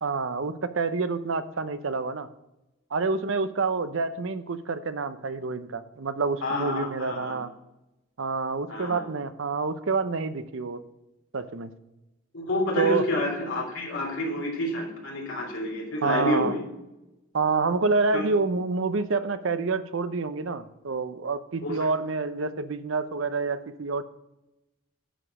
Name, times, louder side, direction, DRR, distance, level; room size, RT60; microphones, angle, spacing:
voice 1, 0.0-2.3 2.9-7.5 8.2-10.8 11.3-11.7 12.8-13.1 16.0-16.5 17.3-24.0, right 4 dB, 65° right, 12 dB, 0.6 m, -28 dB
voice 2, 6.4-7.3 8.7-9.0 12.3-16.6 18.1-18.2 21.6-21.8, left 1 dB, 65° left, -1 dB, 3.3 m, -29 dB
10.0 x 5.0 x 7.3 m, 0.95 s
head